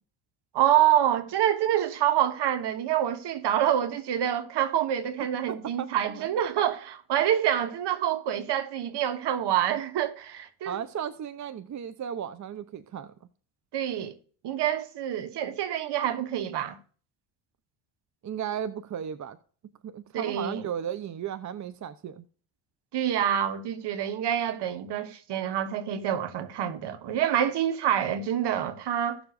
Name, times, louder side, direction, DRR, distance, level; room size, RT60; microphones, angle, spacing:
voice 1, 0.5-10.8 13.7-14.1 14.4-16.8 20.1-20.6 22.9-29.2, right 10 dB, 60° right, 1.4 m, -27 dB
voice 2, 5.2-6.3 10.6-13.1 18.2-19.4 19.8-22.2, right 8 dB, 40° right, 0.7 m, -35 dB
16.0 x 7.0 x 2.5 m
supercardioid pair, 75°, 46 cm